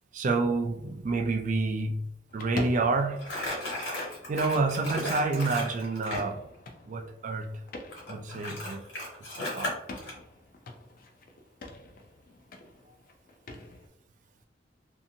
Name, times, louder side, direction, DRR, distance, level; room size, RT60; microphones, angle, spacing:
voice 1, 0.1-2.1 2.3-3.2 4.3-6.4 6.9-7.6 8.1-8.8 9.4-9.7, right 3 dB, 45° right, 0.3 m, -28 dB
sound 1, 2.3-13.9, left 2 dB, 50° left, 0.4 m, -45 dB
Crumpling crinkling, 3.2-6.3 7.9-10.1, left 1 dB, 75° left, 1.3 m, -35 dB
2.7 x 2.5 x 2.6 m
head